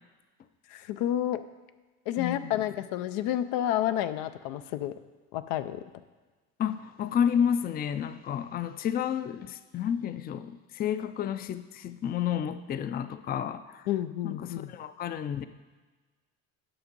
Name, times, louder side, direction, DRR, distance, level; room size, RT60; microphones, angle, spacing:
voice 1, 0.7-1.4 2.1-4.9 5.3-5.8 8.3-8.4 13.9-14.7, left 12 dB, 85° left, 11 dB, 0.6 m, -30 dB
voice 2, 2.2-2.6 6.6-13.8 14.2-15.5, left 8 dB, 30° left, 12 dB, 0.4 m, -31 dB
10.0 x 6.1 x 5.3 m, 1.3 s
cardioid pair, 120°, 33 cm